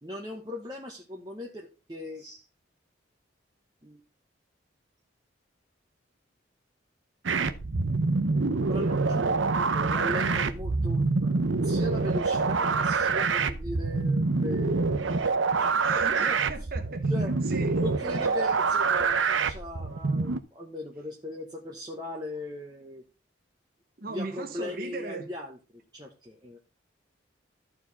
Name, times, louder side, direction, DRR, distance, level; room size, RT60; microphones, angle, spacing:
voice 1, 0.0-2.4 3.8-4.0 8.6-15.1 15.6-16.4 17.1-17.3 17.8-23.0 24.1-26.6, left 2 dB, 20° right, 1.1 m, -39 dB
sound 1, 7.3-20.4, right 4 dB, 80° right, 0.8 m, -26 dB
voice 2, 15.8-17.0 17.5-17.7 24.0-25.2, right 3 dB, 50° right, 1.2 m, -37 dB
13.5 x 4.8 x 4.1 m
head